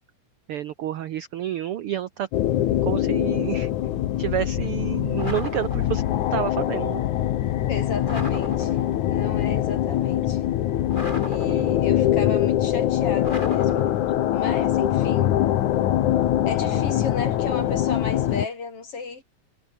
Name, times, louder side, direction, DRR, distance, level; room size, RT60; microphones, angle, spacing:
voice 1, 0.5-2.3 2.8-3.7 4.2-6.0 6.3-7.0 11.4-11.9 16.6-16.8, right 11 dB, 70° right, 1.4 m, -29 dB
sound 1, 2.3-18.5, left 12 dB, 75° left, 2.6 m, -23 dB
sound 2, 5.2-6.3 8.0-9.2 10.9-12.1 13.2-14.4, left 1 dB, 15° left, 7.0 m, -36 dB
voice 2, 7.7-10.5 11.3-13.9 14.3-15.4 16.5-19.2, left 4 dB, 50° left, 4.8 m, -33 dB
omnidirectional pair, 3.5 m